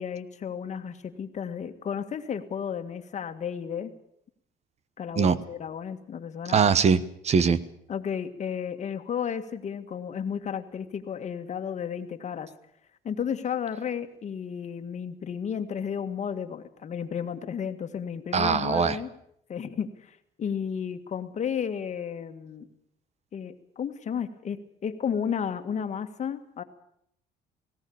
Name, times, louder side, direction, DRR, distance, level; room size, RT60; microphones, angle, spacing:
voice 1, 0.0-3.9 5.0-6.6 7.9-12.5 13.0-19.1 19.5-22.7 23.3-26.6, left 7 dB, 45° left, 9 dB, 1.8 m, -33 dB
voice 2, 6.5-7.6 18.3-19.0, right 6 dB, 40° right, 16 dB, 1.2 m, -22 dB
18.5 x 17.0 x 8.7 m, 0.72 s
cardioid pair, 110°, 17 cm